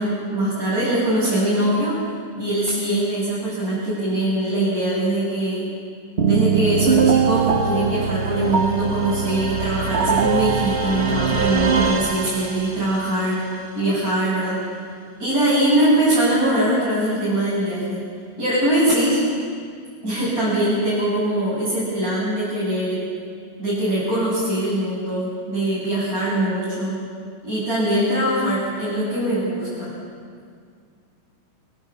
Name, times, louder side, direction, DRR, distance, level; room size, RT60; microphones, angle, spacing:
voice 1, 0.0-2.0 2.4-5.7 6.2-13.4 13.8-14.6 15.2-18.0 18.4-19.2 20.0-23.0 23.6-27.0 27.4-29.9, right 1 dB, 25° right, -9 dB, 8.6 m, -22 dB
sound 1, 6.2-12.9, right 6 dB, 55° right, 0.7 m, -21 dB
28.0 x 27.0 x 7.3 m, 2.1 s
omnidirectional pair, 3.7 m